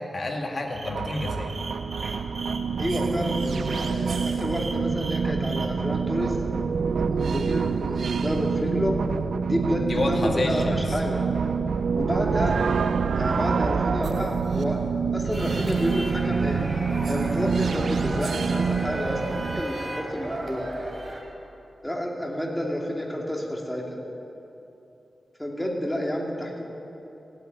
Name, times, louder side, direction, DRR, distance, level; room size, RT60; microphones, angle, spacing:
voice 1, 0.0-1.5 9.8-11.0, left 2 dB, 50° left, 0 dB, 2.2 m, -29 dB
sound 1, 0.7-5.7, right 3 dB, 60° right, 1.8 m, -38 dB
sound 2, 0.8-19.6, right 5 dB, 85° right, 0.4 m, -27 dB
voice 2, 2.8-6.4 7.0-9.0 9.5-11.2 11.9-12.6 13.1-14.8 15.1-16.6 17.1-20.7 21.8-23.9 25.4-26.7, equal, 5° left, -1 dB, 2.7 m, -29 dB
sound 3, 15.3-21.2, right 1 dB, 40° right, 3.1 m, -35 dB
16.0 x 9.1 x 9.3 m, 3.0 s
wide cardioid pair, 80°, 0 cm